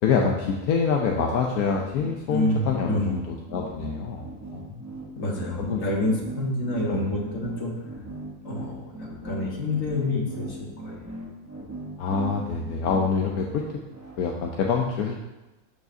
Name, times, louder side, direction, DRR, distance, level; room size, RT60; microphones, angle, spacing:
voice 1, 0.0-4.2 4.5-4.8 5.6-5.8 6.9-7.1 12.0-13.8 14.2-15.1, left 5 dB, 90° left, 1 dB, 1.2 m, -26 dB
sound 1, 1.6-14.2, right 1 dB, 15° right, 0.8 m, -39 dB
voice 2, 2.3-3.1 5.2-7.7 8.4-10.9, left 1 dB, 60° left, -2 dB, 1.8 m, -28 dB
12.0 x 4.7 x 2.7 m, 1.0 s
omnidirectional pair, 1.5 m